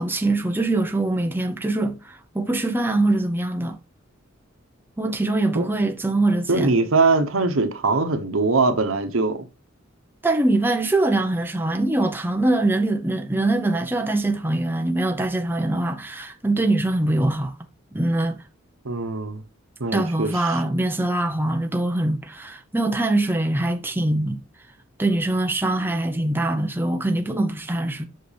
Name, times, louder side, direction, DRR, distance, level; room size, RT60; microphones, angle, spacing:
voice 1, 0.0-3.8 5.0-6.7 10.2-17.5 17.9-18.4 19.9-24.4 25.0-28.0, right 2 dB, 10° right, 0.8 m, -23 dB
voice 2, 6.5-9.5 18.8-19.4 19.8-20.6, right 3 dB, 80° right, 1.1 m, -22 dB
7.8 x 6.0 x 3.4 m
head